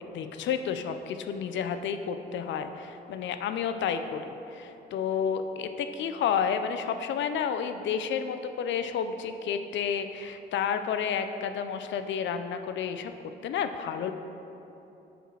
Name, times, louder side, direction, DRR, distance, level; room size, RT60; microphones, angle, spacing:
voice 1, 0.0-13.1 13.4-14.1, left 7 dB, 70° left, 9 dB, 0.5 m, -31 dB
5.0 x 4.9 x 6.2 m, 3.0 s
cardioid pair, 90°, 20 cm